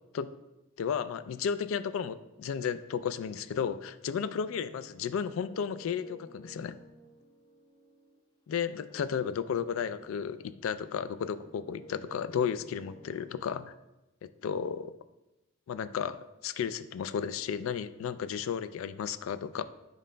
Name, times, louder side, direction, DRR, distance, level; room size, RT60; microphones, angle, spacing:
voice 1, 0.8-6.7 8.5-13.7 14.4-14.9 15.7-19.6, left 7 dB, 75° left, 14 dB, 0.3 m, -33 dB
sound 1, 4.1-10.9 11.2-13.4, equal, 20° left, 0.7 m, -55 dB
8.8 x 5.1 x 2.2 m, 0.99 s
head